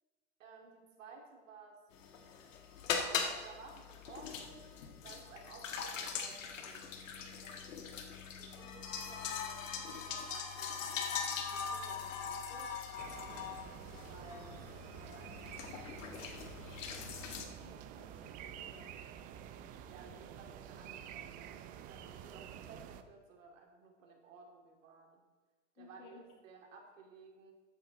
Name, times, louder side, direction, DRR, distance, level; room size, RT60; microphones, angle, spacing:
voice 1, 0.4-1.8 2.9-4.7 5.0-11.2 11.5-13.4 14.0-14.6 15.0-15.5 15.9-16.5 19.9-25.2 25.8-27.5, right 4 dB, 80° right, 1 dB, 3.0 m, -56 dB
sound 1, 1.9-17.5, left 6 dB, 80° left, 1.6 m, -41 dB
sound 2, 13.0-23.0, right 9 dB, 25° right, 0.4 m, -49 dB
voice 2, 17.6-19.0 20.0-20.3 25.8-26.2, left 4 dB, 45° left, 2 dB, 2.3 m, -58 dB
13.0 x 8.6 x 4.1 m, 1.4 s
supercardioid pair, 140°, 38 cm